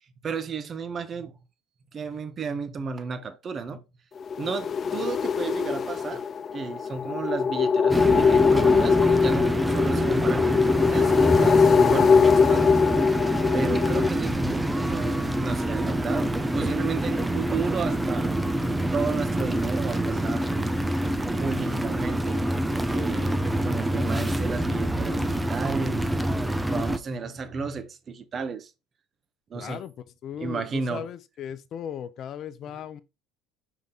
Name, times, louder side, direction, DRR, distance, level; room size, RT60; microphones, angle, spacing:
voice 1, 0.2-1.4 1.9-3.8 4.4-6.3 6.5-18.4 18.6-20.5 21.4-22.5 22.9-23.3 23.6-26.1 26.7-28.7 29.5-29.8 30.4-31.1, right 5 dB, 35° right, 1.2 m, -33 dB
sound 1, 4.2-14.1, left 5 dB, 35° left, 0.4 m, -22 dB
sound 2, 7.9-27.0, right 1 dB, 10° right, 0.7 m, -26 dB
voice 2, 29.5-29.9 30.2-33.0, left 9 dB, 50° left, 0.8 m, -37 dB
5.3 x 4.8 x 4.0 m
supercardioid pair, 90°, 0 cm